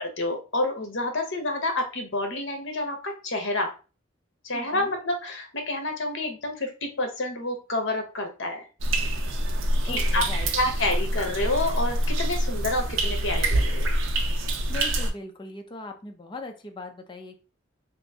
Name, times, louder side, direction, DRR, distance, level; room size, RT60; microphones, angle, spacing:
voice 1, 0.0-3.7 4.4-8.7 9.8-10.3 10.5-13.9, left 2 dB, 65° left, 4 dB, 0.9 m, -28 dB
voice 2, 4.5-4.9 9.8-10.5 14.7-17.4, left 2 dB, 25° left, 4 dB, 0.5 m, -39 dB
sound 1, 8.8-15.1, right 1 dB, 70° right, 0.6 m, -26 dB
2.9 x 2.5 x 3.5 m, 0.34 s
head